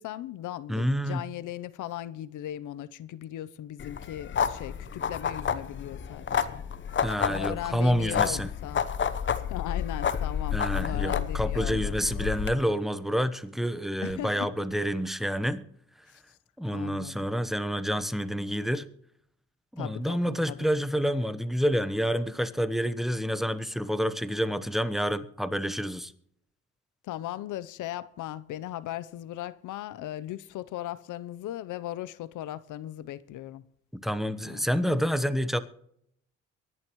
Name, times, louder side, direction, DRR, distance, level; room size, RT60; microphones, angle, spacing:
voice 1, 0.0-6.6 7.3-8.8 9.4-11.9 14.0-14.5 16.1-16.4 16.7-17.3 19.8-20.6 27.0-33.6 34.4-34.7, left 13 dB, 80° left, 0.8 m, -38 dB
voice 2, 0.7-1.2 7.0-8.5 10.5-15.6 16.6-18.8 19.7-26.1 33.9-35.6, equal, ahead, 1.0 m, -28 dB
sound 1, 3.8-12.5, left 8 dB, 40° left, 1.0 m, -30 dB
24.0 x 11.0 x 3.1 m
cardioid pair, 90°, 30 cm